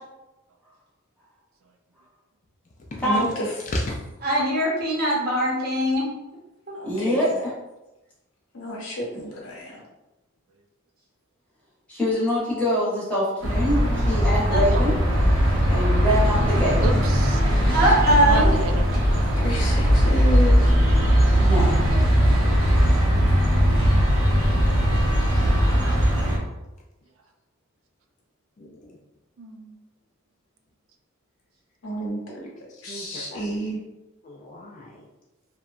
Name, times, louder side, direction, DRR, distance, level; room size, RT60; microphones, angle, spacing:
voice 1, 3.0-3.5 6.8-7.1 8.5-9.7 19.4-20.7 31.8-32.4 32.8-33.8, right 1 dB, 85° left, -3 dB, 0.8 m, -30 dB
voice 2, 4.2-6.1 6.7-6.8 14.5-14.6 17.7-18.5, right 1 dB, 45° right, -4 dB, 0.8 m, -21 dB
voice 3, 6.8-7.5 11.9-15.0 15.7-16.8 17.7-17.8 21.3-21.8, equal, 5° left, -8 dB, 0.8 m, -24 dB
sound 1, 13.4-26.4, equal, 90° right, 0.7 m, -19 dB
voice 4, 14.5-14.9 16.8-17.4 18.1-18.9 29.4-29.8, right 3 dB, 70° right, 4 dB, 0.3 m, -31 dB
voice 5, 28.6-29.0 32.9-33.4 34.2-35.0, left 1 dB, 35° left, -1 dB, 0.3 m, -33 dB
2.8 x 2.1 x 2.4 m, 0.99 s
head